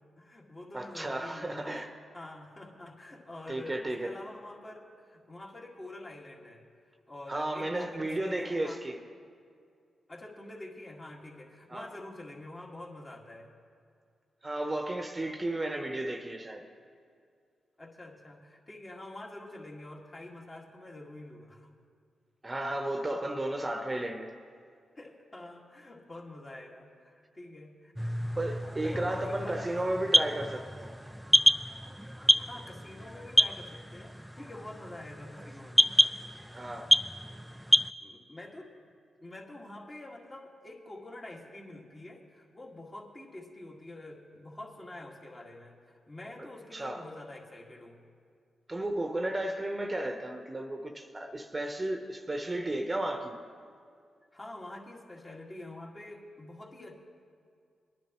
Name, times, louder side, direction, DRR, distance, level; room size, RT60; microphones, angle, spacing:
voice 1, 0.2-1.8 2.1-6.6 7.1-8.8 10.1-13.5 17.8-21.7 25.0-28.2 28.8-29.6 32.4-36.1 38.0-38.9 39.2-48.0 54.3-57.0, left 1 dB, 30° left, -2 dB, 2.0 m, -47 dB
voice 2, 0.7-1.9 3.5-4.1 7.3-9.0 11.7-11.9 14.4-16.6 22.4-24.3 28.4-30.9 36.5-36.9 46.7-47.1 48.7-53.3, right 1 dB, 25° right, 4 dB, 0.9 m, -33 dB
sound 1, 28.0-37.9, equal, ahead, 0.4 m, -28 dB
20.0 x 10.0 x 3.0 m, 2.2 s
cardioid pair, 55°, 0 cm